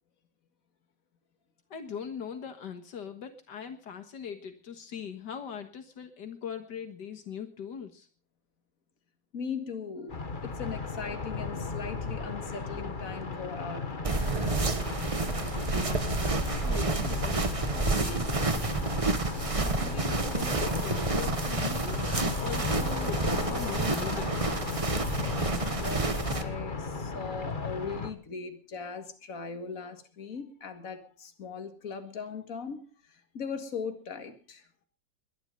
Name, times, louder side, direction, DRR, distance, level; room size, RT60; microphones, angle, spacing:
voice 1, 1.7-8.1 15.4-17.5 17.7-19.0 19.6-24.4, left 7 dB, 80° left, 2.1 m, -41 dB
voice 2, 9.3-14.0 25.8-34.7, left 5 dB, 50° left, 2.3 m, -39 dB
sound 1, 10.1-28.1, left 4 dB, 30° left, 1.6 m, -35 dB
sound 2, 14.0-26.4, right 3 dB, 20° right, 1.2 m, -29 dB
21.5 x 11.0 x 5.3 m
omnidirectional pair, 1.8 m